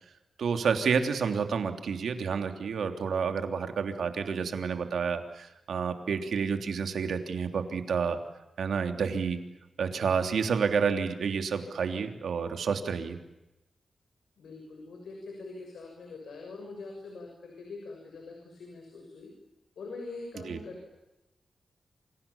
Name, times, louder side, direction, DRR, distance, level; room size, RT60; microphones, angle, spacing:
voice 1, 0.4-8.2 8.6-9.4 9.8-13.2 20.4-20.6, right 6 dB, 85° right, 6 dB, 3.2 m, -29 dB
voice 2, 14.4-19.3 19.8-20.9, left 3 dB, 85° left, 3 dB, 6.7 m, -43 dB
29.0 x 27.5 x 7.2 m, 0.98 s
wide cardioid pair, 110°, 0 cm